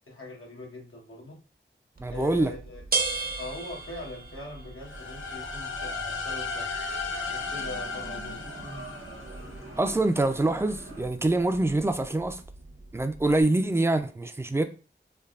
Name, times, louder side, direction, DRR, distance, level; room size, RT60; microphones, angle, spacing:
voice 1, 0.1-1.4 2.1-2.8 3.4-6.7 7.2-8.4, left 2 dB, 90° left, 1.0 m, -41 dB
sound 1, 1.9-13.4, right 4 dB, 45° right, 0.6 m, -38 dB
voice 2, 2.0-2.5 9.8-12.4 12.9-14.6, right 2 dB, 10° right, 0.3 m, -25 dB
sound 2, 4.8-9.7, left 4 dB, 70° left, 0.5 m, -35 dB
sound 3, 4.9-11.0, right 2 dB, 85° right, 0.7 m, -45 dB
3.3 x 2.2 x 2.3 m
wide cardioid pair, 45°, 21 cm